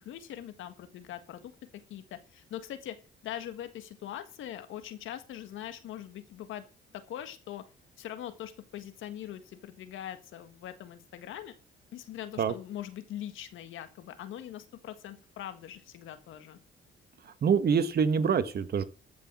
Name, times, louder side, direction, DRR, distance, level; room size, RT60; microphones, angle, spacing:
voice 1, 0.0-3.0 3.2-6.6 6.9-7.6 8.0-11.5 11.9-16.6, left 11 dB, 80° left, 10 dB, 1.7 m, -42 dB
voice 2, 17.4-18.8, right 6 dB, 50° right, 12 dB, 1.3 m, -25 dB
14.5 x 6.0 x 6.2 m, 0.35 s
cardioid pair, 90°, 20 cm